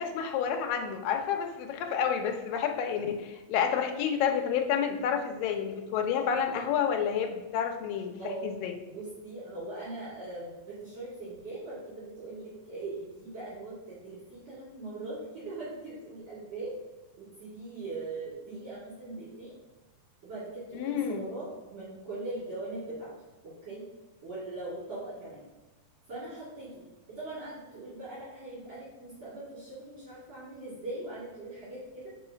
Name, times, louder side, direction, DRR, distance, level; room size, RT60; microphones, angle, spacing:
voice 1, 0.0-8.7 20.7-21.3, left 7 dB, 80° left, 4 dB, 2.4 m, -30 dB
voice 2, 8.8-16.7 17.2-19.5 20.2-23.1 23.4-23.9 24.2-25.4 26.1-32.1, right 2 dB, 50° right, -10 dB, 3.3 m, -40 dB
5.6 x 4.7 x 5.1 m, 1.1 s
omnidirectional pair, 4.0 m